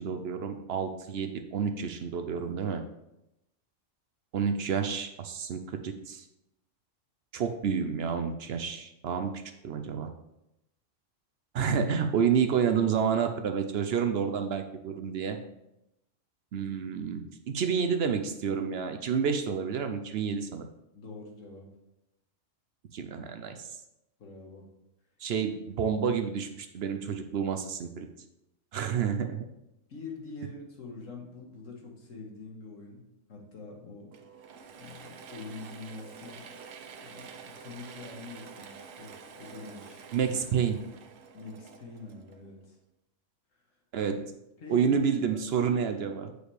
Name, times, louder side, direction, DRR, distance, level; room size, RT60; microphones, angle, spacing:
voice 1, 0.0-2.8 4.3-6.3 7.3-9.3 9.6-10.1 11.5-15.4 16.5-20.7 22.9-23.7 25.2-28.1 28.7-29.4 40.1-40.8 43.9-44.2 44.7-46.3, right 7 dB, 60° right, 6 dB, 0.7 m, -29 dB
voice 2, 20.9-21.7 24.2-24.7 29.9-33.0 33.3-34.1 34.8-36.4 37.0-40.3 41.3-42.8 44.0-44.2 44.6-45.0 45.3-45.4, left 3 dB, 85° left, 0 dB, 1.7 m, -45 dB
Mechanisms / Drill, 34.1-42.7, right 6 dB, 90° right, 1.1 m, -48 dB
8.0 x 5.0 x 3.3 m, 0.87 s
omnidirectional pair, 1.3 m